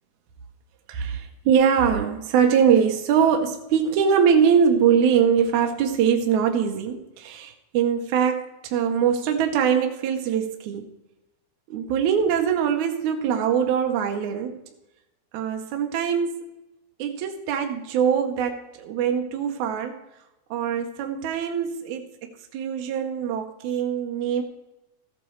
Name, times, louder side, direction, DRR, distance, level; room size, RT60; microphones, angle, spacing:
voice 1, 0.9-10.9 11.7-14.6 15.3-16.5 17.0-20.0 20.5-22.1 22.5-24.4, right 7 dB, 75° right, 4 dB, 2.1 m, -22 dB
15.0 x 8.6 x 3.1 m, 0.97 s
omnidirectional pair, 3.6 m